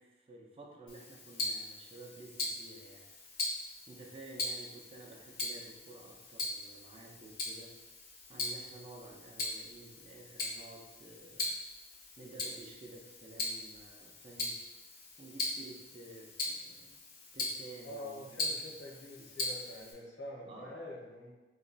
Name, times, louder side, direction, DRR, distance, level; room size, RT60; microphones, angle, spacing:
voice 1, 0.0-3.5 3.9-7.8 8.3-11.5 12.2-14.6 15.2-17.0 17.3-18.6 20.5-20.8, right 2 dB, 30° right, 0 dB, 0.4 m, -52 dB
Tick-tock, 0.9-19.9, left 2 dB, 50° left, 0.6 m, -40 dB
voice 2, 17.8-21.3, left 1 dB, 75° left, -4 dB, 1.0 m, -46 dB
3.0 x 2.2 x 3.8 m, 1.1 s
head